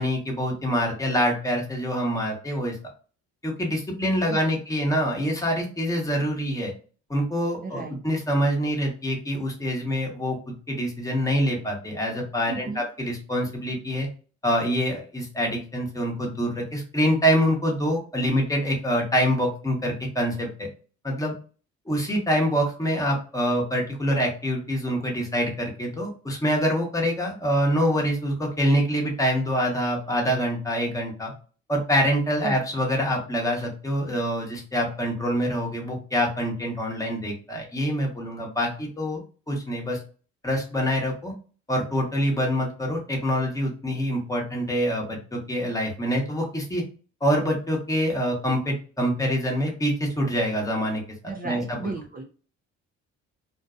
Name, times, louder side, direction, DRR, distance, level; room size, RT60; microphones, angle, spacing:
voice 1, 0.0-2.8 3.4-6.7 7.1-10.4 10.7-14.1 14.4-20.7 21.0-21.3 21.9-31.3 31.7-39.2 39.5-40.0 40.4-41.3 41.7-46.8 47.2-51.0 51.4-51.9, equal, 10° left, -1 dB, 0.9 m, -25 dB
voice 2, 4.3-4.6 7.6-8.0 12.5-12.8 32.4-32.8 51.3-52.2, right 4 dB, 30° right, 0 dB, 0.4 m, -34 dB
2.6 x 2.2 x 2.4 m, 0.38 s
cardioid pair, 90°, 30 cm